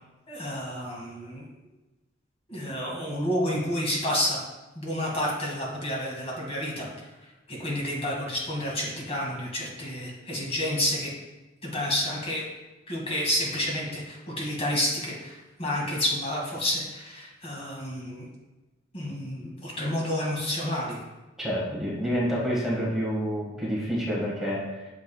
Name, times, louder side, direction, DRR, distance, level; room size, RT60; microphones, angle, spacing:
voice 1, 0.3-1.4 2.5-4.4 4.8-6.9 7.5-11.1 11.6-12.4 12.9-18.3 18.9-21.0, left 1 dB, 30° left, -3 dB, 2.1 m, -30 dB
voice 2, 21.4-24.9, equal, ahead, -6 dB, 1.7 m, -28 dB
9.0 x 6.5 x 2.3 m, 1.1 s
head